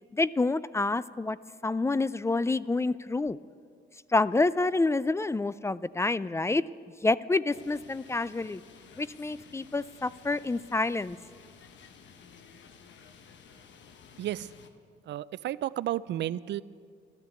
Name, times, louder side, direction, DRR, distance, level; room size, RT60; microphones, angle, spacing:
voice 1, 0.1-1.4 1.6-3.4 4.1-6.6 7.0-8.6 9.0-11.2, left 3 dB, 15° left, 18 dB, 0.3 m, -28 dB
sound 1, 7.5-14.7, left 6 dB, 65° left, 1.1 m, -54 dB
voice 2, 14.2-14.5 15.1-16.6, right 13 dB, 65° right, 18 dB, 0.4 m, -32 dB
13.0 x 12.5 x 8.2 m, 2.1 s
cardioid pair, 90°, 20 cm